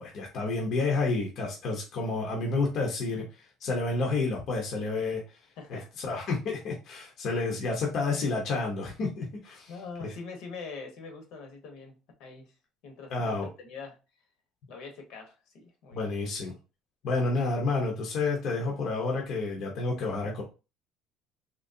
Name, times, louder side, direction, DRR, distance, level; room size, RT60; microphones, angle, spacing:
voice 1, 0.0-5.4 5.7-9.7 10.0-10.1 13.1-13.5 15.9-16.5 17.0-20.4, left 3 dB, 45° left, 0.9 m, -30 dB
voice 2, 5.6-5.9 9.7-11.9 12.2-12.5 12.8-14.0 14.7-16.1, left 4 dB, 60° left, 1.1 m, -43 dB
3.8 x 3.0 x 2.7 m
cardioid pair, 175°, 0 cm